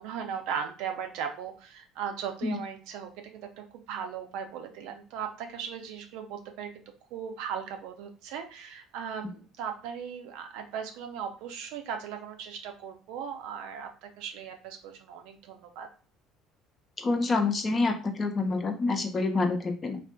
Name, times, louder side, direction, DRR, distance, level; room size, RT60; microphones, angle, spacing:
voice 1, 0.0-6.8 7.1-15.9, right 7 dB, 65° right, 5 dB, 0.4 m, -38 dB
voice 2, 17.0-20.0, left 3 dB, 35° left, 5 dB, 0.6 m, -27 dB
2.5 x 2.3 x 2.2 m, 0.37 s
figure-of-eight pair, 55°, 0 cm